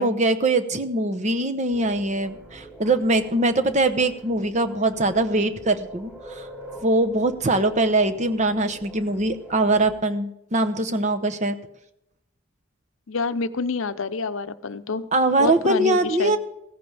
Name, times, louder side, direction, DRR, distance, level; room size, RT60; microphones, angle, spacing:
voice 1, 0.0-6.5 6.8-11.6 15.1-16.4, right 2 dB, 35° right, 8 dB, 0.9 m, -22 dB
sound 1, 1.7-9.9, right 1 dB, 10° right, 4.4 m, -44 dB
voice 2, 13.1-15.1 15.4-16.3, left 4 dB, 70° left, 11 dB, 0.7 m, -27 dB
16.0 x 14.5 x 3.4 m, 0.84 s
head